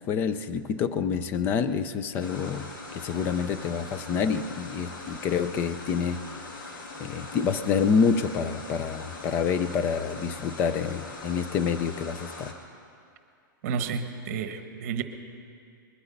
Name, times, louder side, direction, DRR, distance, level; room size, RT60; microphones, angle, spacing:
voice 1, 0.1-6.5 7.0-12.5, left 6 dB, 20° left, 12 dB, 0.4 m, -27 dB
sound 1, 2.2-12.5, left 2 dB, 70° left, 2.1 m, -41 dB
voice 2, 13.6-15.0, right 6 dB, 40° right, 8 dB, 1.1 m, -31 dB
21.0 x 9.7 x 5.3 m, 2.5 s
hypercardioid pair, 165°, 11 cm